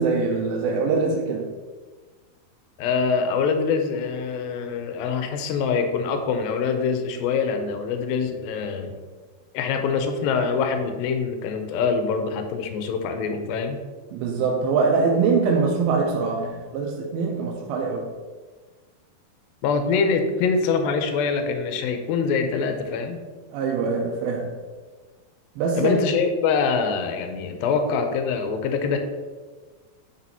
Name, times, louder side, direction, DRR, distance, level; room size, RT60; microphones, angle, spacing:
voice 1, 0.0-1.5 14.1-18.1 23.5-24.6 25.6-26.0, right 4 dB, 90° right, 0 dB, 2.5 m, -23 dB
voice 2, 2.8-8.9 9.5-13.8 19.6-23.2 25.8-29.0, left 5 dB, 80° left, 6 dB, 2.4 m, -24 dB
9.3 x 5.0 x 2.9 m, 1.4 s
omnidirectional pair, 4.3 m